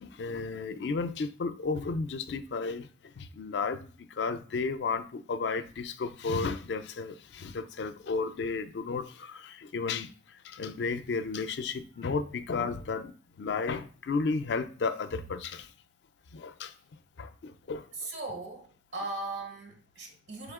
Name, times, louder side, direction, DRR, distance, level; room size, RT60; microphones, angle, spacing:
voice 1, 0.0-2.9 3.2-3.9 4.2-10.1 10.4-13.1 13.4-15.7 16.3-16.7 17.2-17.8, left 4 dB, 70° left, 0.4 m, -33 dB
voice 2, 18.0-20.5, right 2 dB, 75° right, 1.1 m, -39 dB
4.2 x 3.4 x 3.6 m
head